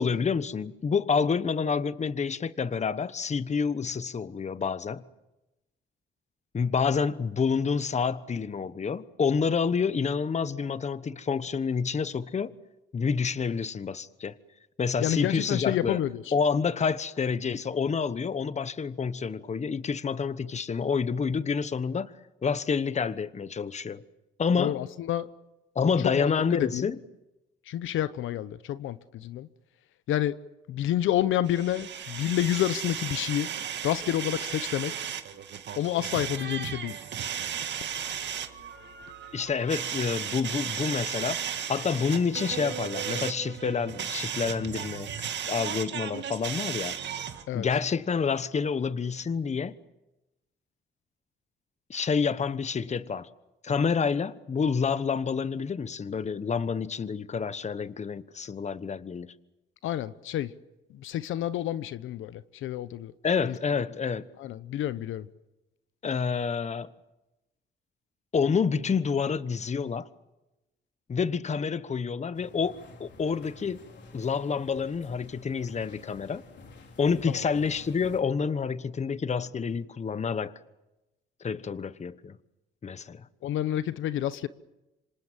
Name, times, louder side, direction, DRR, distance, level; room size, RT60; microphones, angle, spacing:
voice 1, 0.0-5.0 6.5-12.5 12.9-14.3 14.8-16.0 16.3-22.1 22.4-24.0 24.4-24.8 25.7-27.0 39.3-47.0 47.5-49.7 51.9-53.3 53.6-59.3 63.2-64.3 66.0-66.9 68.3-70.1 71.1-73.8 74.1-76.4 77.0-80.5 81.4-82.4 82.8-83.3, left 5 dB, 35° left, 1.1 m, -28 dB
voice 2, 15.0-16.3 24.6-25.3 26.0-26.9 27.7-29.5 30.1-30.4 30.7-33.5 33.8-34.9 35.8-37.0 47.5-47.7 59.8-60.5 60.9-63.1 63.5-63.6 64.4-65.3 77.3-77.4 83.4-84.5, left 12 dB, 80° left, 1.0 m, -29 dB
sound 1, 31.5-47.4, right 9 dB, 65° right, 2.1 m, -35 dB
sound 2, 72.3-78.2, left 3 dB, 65° left, 3.6 m, -50 dB
26.5 x 26.5 x 7.5 m
cardioid pair, 90°, 20 cm